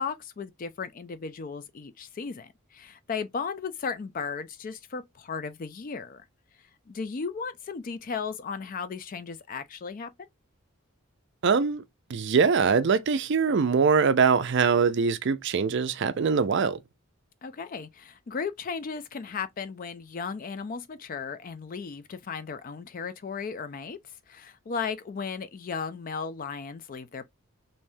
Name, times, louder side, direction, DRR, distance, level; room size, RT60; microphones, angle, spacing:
voice 1, 0.0-6.2 6.9-10.3 17.4-24.0 24.3-27.3, left 5 dB, 40° left, 0.3 m, -35 dB
voice 2, 11.4-11.8 12.1-16.8, right 5 dB, 55° right, 0.4 m, -23 dB
3.4 x 2.7 x 2.6 m
head